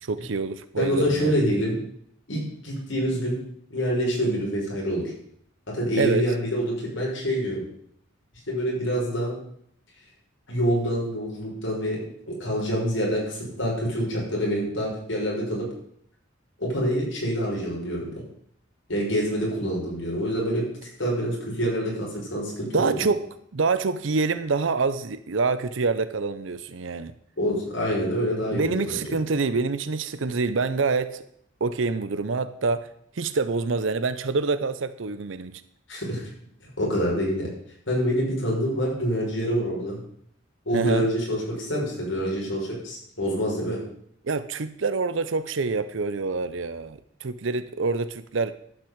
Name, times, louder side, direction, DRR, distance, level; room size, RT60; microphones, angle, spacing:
voice 1, 0.0-1.4 6.0-6.2 22.7-23.3 23.5-27.1 28.5-31.2 31.6-32.9 33.2-35.6 40.7-41.1 44.2-48.5, right 4 dB, 80° right, 12 dB, 0.7 m, -26 dB
voice 2, 0.8-1.8 2.3-3.4 3.7-5.1 5.7-7.6 8.5-9.4 10.5-12.0 12.3-15.7 16.6-18.1 18.9-20.7 21.0-23.1 27.4-29.0 35.9-36.2 36.8-37.5 37.9-40.0 40.7-43.8, equal, 80° left, -3 dB, 5.5 m, -26 dB
12.0 x 6.0 x 8.0 m, 0.68 s
head